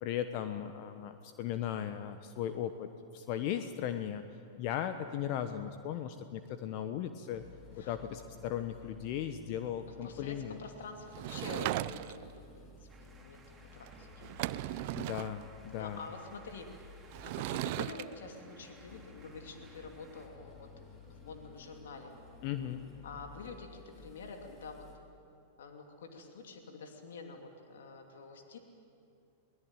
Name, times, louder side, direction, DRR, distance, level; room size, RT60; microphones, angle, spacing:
voice 1, 0.0-2.9 3.1-4.2 4.6-7.4 7.8-10.6 15.0-16.1 22.4-22.8, left 10 dB, 50° left, 9 dB, 1.2 m, -37 dB
sound 1, 7.3-25.0, left 4 dB, 25° left, 5.3 m, -55 dB
voice 2, 9.8-12.3 12.6-13.4 13.7-14.1 15.7-16.7 17.2-20.7 21.1-22.1 23.0-24.8 25.6-28.6, left 4 dB, 75° left, 4 dB, 2.9 m, -47 dB
Sliding door / Wood, 11.1-12.4 13.9-14.0 14.2-15.3 17.1-18.0, right 17 dB, 55° right, 0.6 m, -37 dB
sound 2, 12.9-20.3, right 4 dB, 10° right, 3.9 m, -61 dB
22.0 x 19.5 x 9.2 m, 2.5 s
hypercardioid pair, 105°, 0 cm